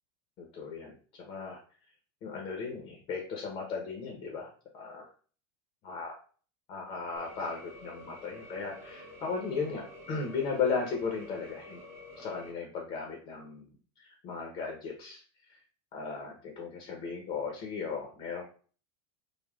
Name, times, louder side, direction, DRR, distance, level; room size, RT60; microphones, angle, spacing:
voice 1, 0.4-1.6 2.2-5.1 5.8-6.2 6.7-11.8 12.2-15.2 15.5-15.6 15.9-18.4, left 5 dB, 45° left, 1 dB, 0.7 m, -36 dB
sound 1, 7.2-12.5, left 1 dB, 15° right, 0.8 m, -49 dB
3.3 x 2.1 x 2.3 m, 0.41 s
supercardioid pair, 130°, 14 cm